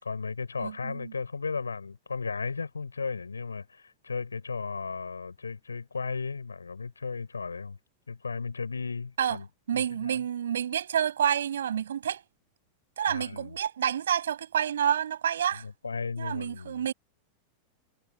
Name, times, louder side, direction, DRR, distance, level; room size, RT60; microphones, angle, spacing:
voice 1, 0.0-7.8 8.1-9.5 9.7-10.2 13.1-13.6 15.5-16.8, left 4 dB, 75° left, 5.0 m, -35 dB
voice 2, 0.6-1.1 9.2-9.4 9.7-12.2 13.0-15.7 16.2-16.9, right 9 dB, 65° right, 7.1 m, -28 dB
figure-of-eight pair, 90°, 0 cm